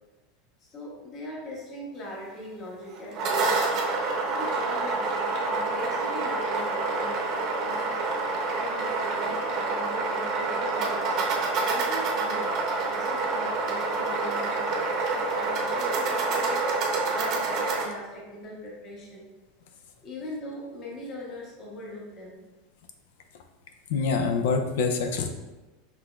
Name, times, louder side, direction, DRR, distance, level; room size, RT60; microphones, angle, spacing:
voice 1, 0.6-3.7 4.2-8.0 8.6-11.2 11.6-19.3 20.0-22.4, left 1 dB, 30° left, -3 dB, 0.9 m, -41 dB
sound 1, 2.9-17.8, right 3 dB, 35° right, 0.8 m, -27 dB
voice 2, 23.9-25.3, left 4 dB, 75° left, 5 dB, 0.5 m, -25 dB
5.8 x 3.2 x 2.3 m, 1.1 s
supercardioid pair, 170°, 0 cm